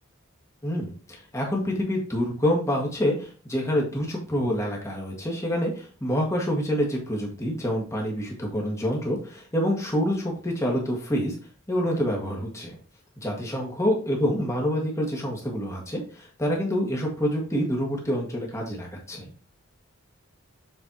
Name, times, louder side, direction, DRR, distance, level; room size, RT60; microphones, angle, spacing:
voice 1, 0.6-11.3 11.7-12.8 13.2-19.3, equal, 15° left, -1 dB, 1.8 m, -27 dB
7.1 x 4.8 x 2.9 m, 0.39 s
head